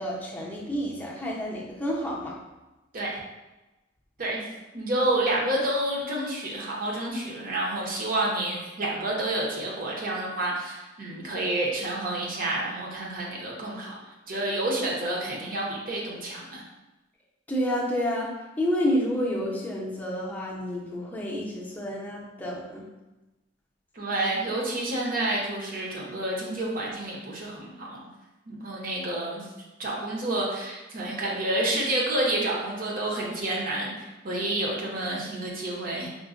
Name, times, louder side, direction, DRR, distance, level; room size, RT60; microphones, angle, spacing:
voice 1, 0.0-2.4 17.5-22.9, equal, 10° left, -5 dB, 0.6 m, -29 dB
voice 2, 4.7-16.6 23.9-28.1 28.5-29.5 29.8-36.1, right 1 dB, 45° right, -3 dB, 0.8 m, -29 dB
5.1 x 2.1 x 2.4 m, 1.1 s
head